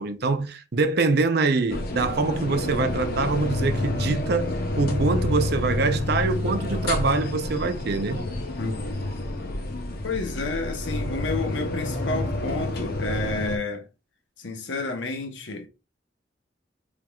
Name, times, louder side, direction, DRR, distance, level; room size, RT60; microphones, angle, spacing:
voice 1, 0.0-4.5 4.8-8.3, right 3 dB, 60° right, 0.6 m, -24 dB
sound 1, 1.7-13.6, left 1 dB, 60° left, 0.8 m, -29 dB
voice 2, 8.6-8.9 10.0-13.8 14.4-15.7, left 3 dB, 85° left, 0.9 m, -30 dB
4.5 x 3.5 x 2.3 m
head